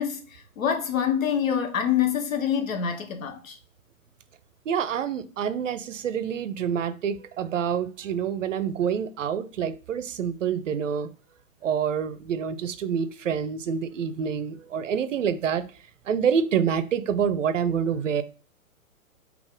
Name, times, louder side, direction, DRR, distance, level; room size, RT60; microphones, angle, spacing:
voice 1, 0.0-3.6, left 8 dB, 70° left, 0.9 m, -26 dB
voice 2, 4.7-11.1 11.6-15.6 16.1-18.2, right 7 dB, 60° right, 0.6 m, -27 dB
4.0 x 2.9 x 3.7 m
figure-of-eight pair, 115°, 42 cm